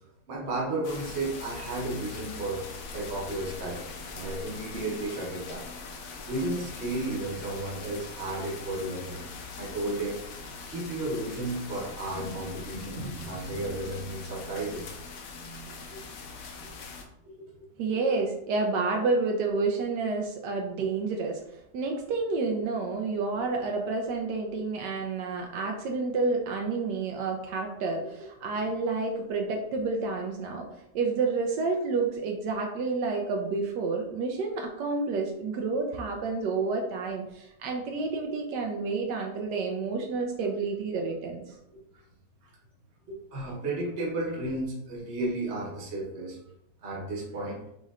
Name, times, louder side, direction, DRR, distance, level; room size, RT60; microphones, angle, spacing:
voice 1, 0.3-2.6 2.9-3.8 4.1-5.7 6.3-9.2 9.6-10.2 10.7-14.9 15.6-16.0 16.6-16.7 17.2-17.7 24.5-24.6 28.5-28.7 41.7-42.0 43.1-46.4 46.8-47.6, right 2 dB, 45° right, -2 dB, 1.2 m, -33 dB
sound 1, 0.8-17.1, left 4 dB, 65° left, 0.9 m, -42 dB
voice 2, 17.8-21.4 21.7-30.7 30.9-41.5, right 4 dB, 80° right, 2 dB, 1.2 m, -29 dB
5.3 x 3.1 x 2.4 m, 0.83 s
omnidirectional pair, 1.8 m